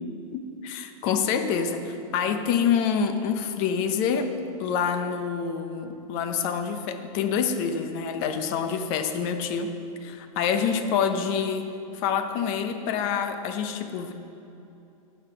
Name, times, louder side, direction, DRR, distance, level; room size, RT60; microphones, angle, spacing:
voice 1, 0.3-4.3 4.6-9.7 10.0-11.7 11.9-14.1, left 7 dB, 45° left, 8 dB, 0.9 m, -27 dB
8.9 x 5.7 x 6.7 m, 2.8 s
hypercardioid pair, 135°, 18 cm